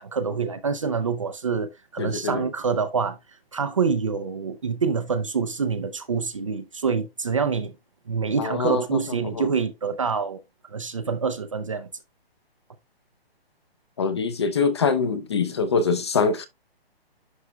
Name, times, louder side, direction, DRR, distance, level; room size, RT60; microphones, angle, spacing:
voice 1, 0.0-3.2 3.5-7.7 8.1-10.4 10.7-11.9, right 5 dB, 30° right, 0.5 m, -26 dB
voice 2, 2.0-2.5 8.4-9.0 9.4-9.5 14.0-16.5, left 5 dB, 25° left, 0.6 m, -24 dB
11.0 x 4.1 x 2.3 m
hypercardioid pair, 165°, 31 cm